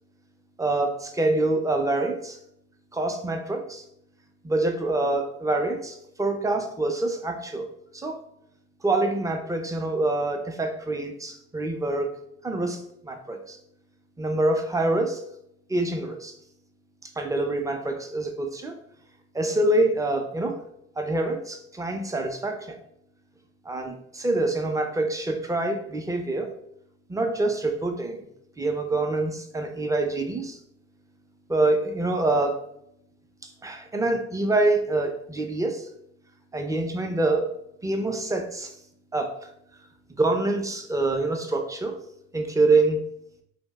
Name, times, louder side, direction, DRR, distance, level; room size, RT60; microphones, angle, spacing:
voice 1, 0.6-2.4 2.9-3.8 4.4-7.7 7.9-8.2 8.8-12.1 12.4-13.6 14.2-15.2 15.7-16.4 17.0-18.8 19.3-20.6 21.0-22.8 23.7-26.5 27.1-28.3 28.6-30.6 31.5-32.6 33.4-35.9 36.5-37.5 37.8-38.8 39.1-39.5 40.1-42.0 42.3-43.0, right 2 dB, 10° right, 4 dB, 0.3 m, -26 dB
2.6 x 2.0 x 3.4 m, 0.75 s
cardioid pair, 90°, 30 cm